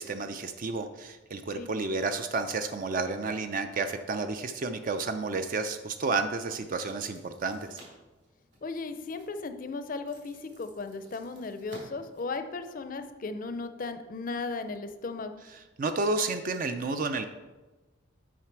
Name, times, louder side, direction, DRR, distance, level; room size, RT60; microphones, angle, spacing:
voice 1, 0.0-7.8 15.5-17.3, right 3 dB, 40° right, 8 dB, 0.4 m, -31 dB
sound 1, 5.1-13.0, right 1 dB, 60° right, 2.8 m, -57 dB
voice 2, 8.6-15.3, left 3 dB, 40° left, 9 dB, 0.5 m, -36 dB
7.4 x 5.7 x 4.6 m, 1.1 s
head